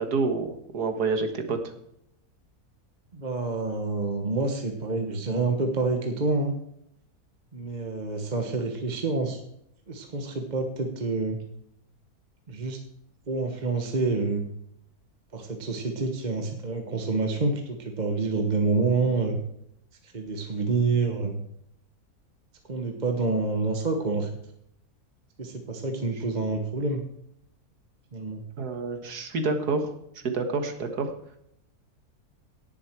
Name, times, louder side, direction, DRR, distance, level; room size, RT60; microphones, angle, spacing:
voice 1, 0.0-1.7 28.6-29.9 30.2-31.1, right 4 dB, 90° right, 6 dB, 2.1 m, -28 dB
voice 2, 3.1-6.5 7.5-9.4 9.9-11.4 12.5-12.8 13.3-14.5 15.3-19.4 20.0-21.4 22.7-24.3 25.4-27.0 28.1-28.4, right 3 dB, 30° right, 4 dB, 1.3 m, -27 dB
17.5 x 7.5 x 4.6 m, 0.75 s
omnidirectional pair, 1.6 m